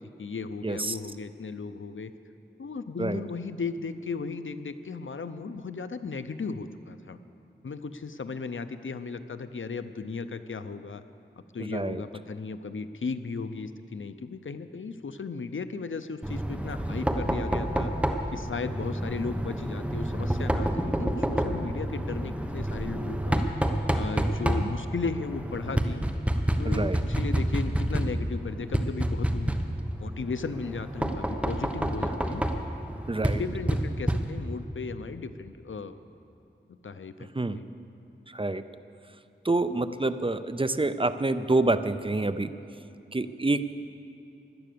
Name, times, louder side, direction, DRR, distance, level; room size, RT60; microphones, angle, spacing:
voice 1, 0.0-2.1 2.6-7.2 7.6-11.0 11.5-17.9 18.3-23.4 23.9-26.0 26.6-29.5 30.0-32.4 33.3-35.9 36.7-37.6, left 4 dB, 80° left, 11 dB, 0.7 m, -36 dB
voice 2, 0.6-1.0 3.0-3.2 11.6-12.0 24.6-24.7 26.6-27.0 33.1-33.4 37.3-37.6 38.3-38.6 39.4-42.5 43.1-43.7, right 2 dB, 25° right, 12 dB, 0.5 m, -27 dB
Knock, 16.2-34.6, right 1 dB, 5° right, 1.1 m, -29 dB
17.0 x 11.5 x 6.8 m, 2.8 s
wide cardioid pair, 60°, 20 cm